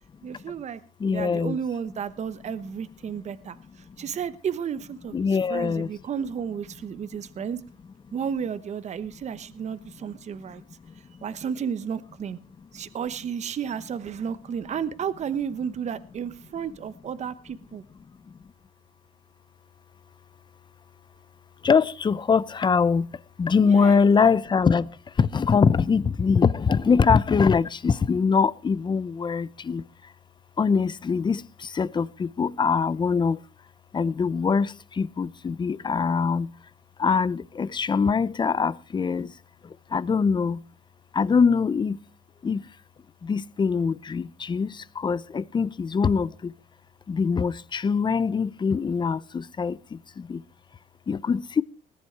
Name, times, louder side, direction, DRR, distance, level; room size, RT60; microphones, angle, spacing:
voice 1, 0.2-0.8 1.1-7.6 8.1-10.6 11.2-12.4 12.7-17.8 23.6-24.0, right 7 dB, 40° right, 1.1 m, -32 dB
voice 2, 1.0-1.6 5.1-5.9 21.6-23.1 23.4-24.9 25.2-29.8 30.6-31.4 31.7-33.4 33.9-36.5 37.0-39.3 39.9-40.6 41.2-41.9 42.4-42.6 43.3-44.7 45.0-46.3 47.1-49.8 50.3-50.4 51.1-51.6, left 5 dB, 25° left, 0.7 m, -23 dB
19.5 x 10.5 x 4.6 m
cardioid pair, 110°, 17 cm